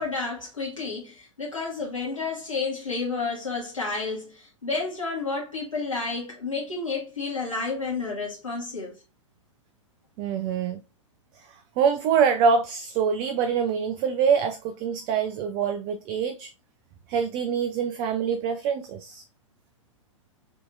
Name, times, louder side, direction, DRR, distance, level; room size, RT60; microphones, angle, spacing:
voice 1, 0.0-9.0, left 4 dB, 80° left, 1.3 m, -31 dB
voice 2, 10.2-10.8 11.4-16.5 17.1-19.2, right 6 dB, 25° right, 0.3 m, -25 dB
5.0 x 2.8 x 2.4 m
figure-of-eight pair, 105°, 17 cm